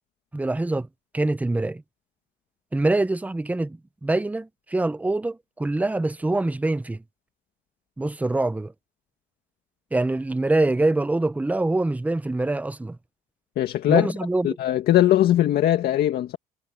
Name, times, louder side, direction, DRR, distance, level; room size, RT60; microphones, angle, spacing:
voice 1, 0.3-0.9 1.1-1.8 2.7-7.0 8.0-8.7 9.9-13.0 13.9-14.5, right 2 dB, 10° right, 0.8 m, -24 dB
voice 2, 13.6-14.1 14.4-16.4, left 12 dB, 65° left, 2.0 m, -20 dB
cardioid pair, 110°, 17 cm